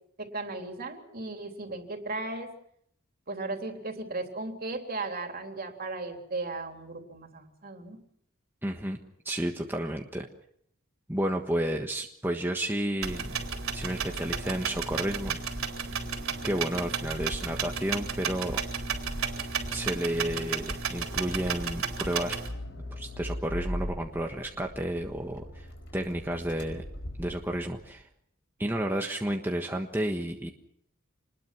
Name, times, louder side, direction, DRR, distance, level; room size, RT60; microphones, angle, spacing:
voice 1, 0.2-2.5 3.3-8.0, right 3 dB, 45° right, 4 dB, 3.4 m, -36 dB
voice 2, 8.6-9.0 9.2-10.3 11.1-13.3 13.7-15.4 16.4-18.6 19.7-22.4 22.9-25.7 25.9-26.8 27.2-28.1 28.6-30.5, right 1 dB, 10° right, 2 dB, 1.4 m, -31 dB
sound 1, 13.0-22.5, right 5 dB, 80° right, 4.1 m, -33 dB
Accelerating revving vroom, 22.5-27.9, left 1 dB, 60° left, 4.9 m, -39 dB
27.0 x 20.5 x 6.0 m, 0.69 s
head